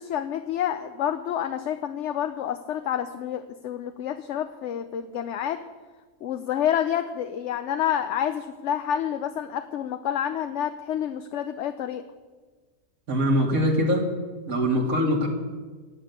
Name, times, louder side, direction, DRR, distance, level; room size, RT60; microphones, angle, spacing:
voice 1, 0.0-5.6 6.2-12.0, left 9 dB, 65° left, 9 dB, 0.9 m, -28 dB
voice 2, 13.1-14.0 14.5-15.3, equal, 75° right, 0 dB, 2.7 m, -22 dB
16.0 x 8.8 x 8.1 m, 1.4 s
omnidirectional pair, 1.5 m